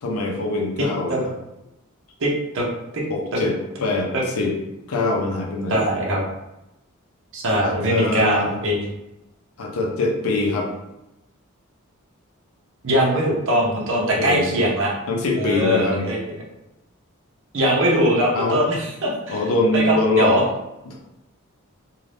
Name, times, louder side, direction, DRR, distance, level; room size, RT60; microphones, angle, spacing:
voice 1, 0.0-1.3 3.1-3.5 3.8-4.5 4.9-5.8 7.6-8.6 9.6-10.7 13.9-14.6 15.1-16.1 18.3-18.6 19.3-20.4 20.9-21.0, left 2 dB, 80° left, 0 dB, 0.6 m, -23 dB
voice 2, 2.2-2.6 2.9-3.0 4.1-4.2 5.7-6.2 7.3-8.9 12.8-14.9 15.4-16.2 17.5-20.4, right 1 dB, 65° right, -3 dB, 0.7 m, -21 dB
2.5 x 2.3 x 3.3 m, 0.93 s
head